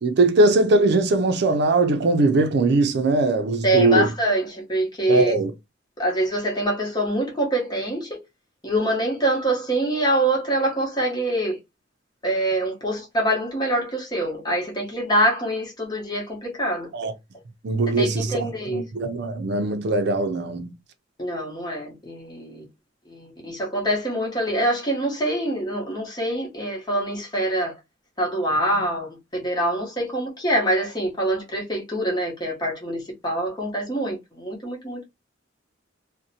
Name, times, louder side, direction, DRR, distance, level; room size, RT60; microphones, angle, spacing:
voice 1, 0.0-4.1 5.1-5.5 16.9-17.1 17.6-20.7, right 2 dB, 60° right, 0.5 m, -20 dB
voice 2, 3.6-5.3 6.0-8.2 8.6-11.6 12.2-16.9 18.0-18.8 21.2-22.6 23.1-27.7 28.2-35.1, right 1 dB, 25° left, 0.9 m, -25 dB
2.6 x 2.1 x 2.7 m
head